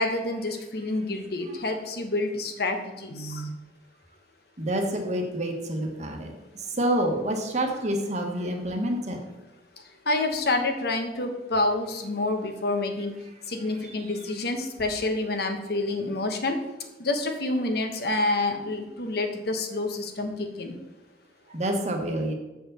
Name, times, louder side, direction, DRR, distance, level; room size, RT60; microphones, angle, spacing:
voice 1, 0.0-3.5 10.1-13.1 13.5-16.6 17.0-20.8, left 2 dB, 60° left, 5 dB, 1.1 m, -28 dB
voice 2, 4.6-9.2 14.0-14.1 21.5-22.3, right 1 dB, 40° right, 2 dB, 1.3 m, -28 dB
7.2 x 4.7 x 6.6 m, 1.1 s
head